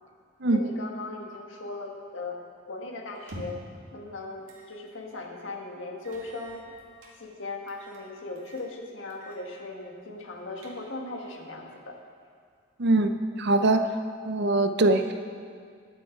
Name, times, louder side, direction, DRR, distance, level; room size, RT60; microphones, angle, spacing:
voice 1, 0.5-2.4 2.7-3.6 3.9-6.7 7.2-12.0, left 2 dB, 65° left, 1 dB, 1.8 m, -38 dB
sound 1, 3.2-3.8 4.5-4.7 5.1-5.2 6.0-7.2 7.7-8.0 8.4-8.7 9.1-9.4 9.7-9.8 10.3-11.1, equal, 80° right, 2.2 m, -46 dB
voice 2, 12.8-13.1 13.4-13.9 14.2-15.0, right 2 dB, 60° right, 8 dB, 0.7 m, -22 dB
21.0 x 7.7 x 4.7 m, 2.1 s
head